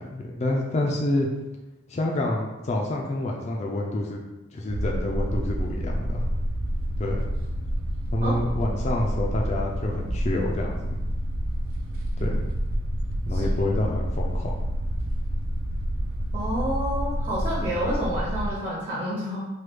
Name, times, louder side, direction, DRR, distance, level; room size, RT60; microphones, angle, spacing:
voice 1, 0.1-1.3 1.9-4.2 4.5-6.3 7.0-7.3 8.1-11.0 12.2-12.4 13.3-14.5, left 1 dB, 35° left, -1 dB, 0.3 m, -28 dB
sound 1, 4.7-18.5, equal, 90° right, 0.4 m, -28 dB
voice 2, 13.3-13.7 16.3-19.5, equal, 40° right, -7 dB, 0.7 m, -29 dB
3.2 x 2.2 x 3.3 m, 1.1 s
head